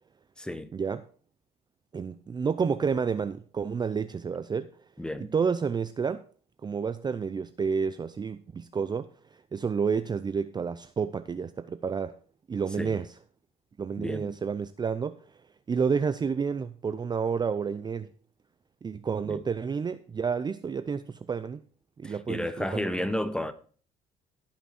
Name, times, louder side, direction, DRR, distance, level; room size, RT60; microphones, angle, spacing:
voice 1, 0.4-0.7 5.0-5.3 12.8-13.0 14.0-14.3 19.2-19.4 22.0-23.5, left 1 dB, 5° left, 1.1 m, -32 dB
voice 2, 1.9-4.7 5.2-6.2 6.6-9.1 9.5-12.1 12.5-13.1 13.8-15.2 15.7-18.1 18.8-21.6 22.0-23.1, right 6 dB, 25° right, 0.5 m, -30 dB
16.0 x 5.9 x 4.3 m
cardioid pair, 110°, 17 cm